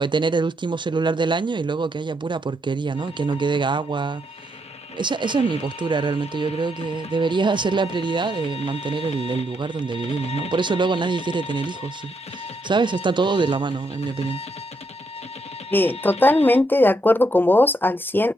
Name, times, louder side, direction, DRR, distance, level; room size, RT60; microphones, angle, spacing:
voice 1, 0.0-4.6 4.9-14.4, right 4 dB, 45° right, 0.5 m, -24 dB
sound 1, 2.9-16.6, left 4 dB, 65° left, 1.4 m, -36 dB
voice 2, 15.7-18.3, left 1 dB, 20° left, 0.5 m, -18 dB
9.9 x 3.3 x 4.8 m
wide cardioid pair, 65°, 11 cm